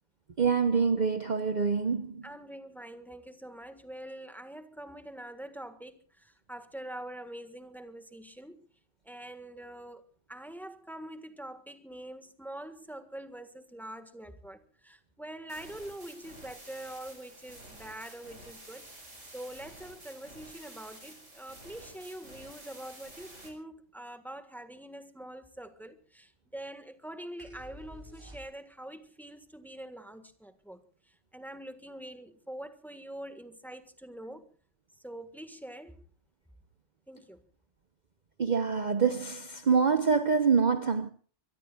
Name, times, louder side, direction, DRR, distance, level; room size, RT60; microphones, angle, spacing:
voice 1, 0.4-2.3 38.4-41.1, right 5 dB, 40° right, 0.9 m, -26 dB
voice 2, 2.2-8.7 9.0-18.9 19.2-30.8 31.1-34.5 35.0-36.0 37.1-37.4, right 1 dB, ahead, 1.5 m, -45 dB
sound 1, 15.5-23.5, right 1 dB, 90° right, 6.0 m, -50 dB
sound 2, 27.4-28.9, equal, 25° right, 3.0 m, -50 dB
24.5 x 23.0 x 2.4 m
omnidirectional pair, 1.2 m